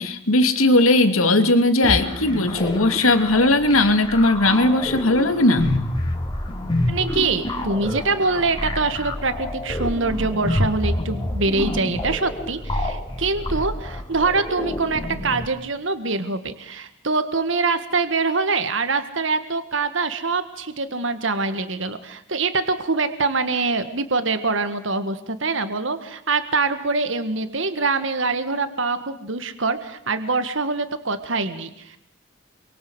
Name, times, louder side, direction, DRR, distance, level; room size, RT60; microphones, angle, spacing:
voice 1, 0.0-5.7, left 2 dB, 90° left, 8 dB, 2.6 m, -18 dB
sound 1, 1.8-15.4, left 1 dB, 20° left, 3.4 m, -28 dB
voice 2, 6.9-32.0, right 3 dB, 60° right, 10 dB, 1.7 m, -24 dB
28.0 x 23.5 x 8.0 m, 0.72 s
head